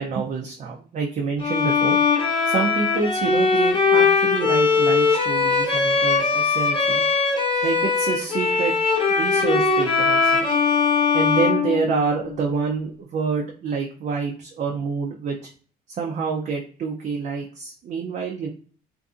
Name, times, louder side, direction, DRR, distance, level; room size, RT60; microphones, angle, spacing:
voice 1, 0.0-2.0 2.4-7.0 7.6-10.5 11.1-15.5 16.0-18.5, right 5 dB, 50° right, -1 dB, 0.5 m, -27 dB
Bowed string instrument, 1.4-12.4, left 4 dB, 30° left, 0.8 m, -20 dB
2.6 x 2.6 x 2.3 m, 0.44 s
cardioid pair, 110°, 17 cm